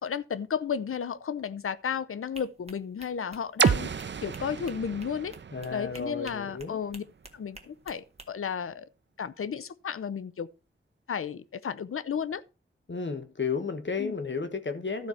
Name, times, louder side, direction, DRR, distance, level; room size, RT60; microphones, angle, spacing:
voice 1, 0.0-3.9 4.2-5.3 5.7-7.0 7.3-8.9 9.2-10.5 11.1-12.4 14.0-14.1, left 7 dB, 85° left, 0.6 m, -33 dB
sound 1, 2.3-8.3, right 2 dB, 30° right, 1.6 m, -50 dB
sound 2, 3.6-7.5, right 6 dB, 60° right, 0.5 m, -31 dB
voice 2, 5.5-6.8 12.9-15.1, left 5 dB, 60° left, 1.3 m, -33 dB
12.5 x 4.5 x 5.6 m
cardioid pair, 45°, 21 cm